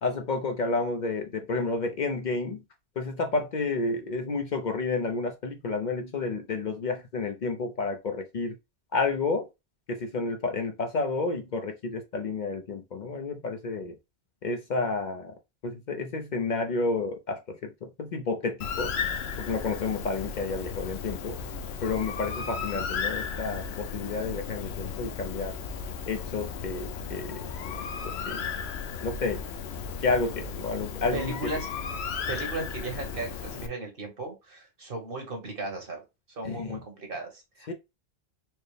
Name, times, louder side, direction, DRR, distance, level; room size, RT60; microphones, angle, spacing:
voice 1, 0.0-2.6 3.0-8.6 8.9-9.5 9.9-14.0 14.4-15.3 15.6-18.9 19.4-21.4 21.8-25.5 26.1-27.7 28.0-28.5 29.0-29.4 30.0-31.4 36.4-36.8 37.7-37.8, left 3 dB, 55° left, 0.6 m, -30 dB
Bird, 18.6-33.7, left 6 dB, 85° left, 0.9 m, -35 dB
voice 2, 31.1-31.7 32.3-36.0 36.3-37.7, right 2 dB, 60° right, 1.4 m, -36 dB
4.5 x 2.0 x 3.1 m
omnidirectional pair, 1.1 m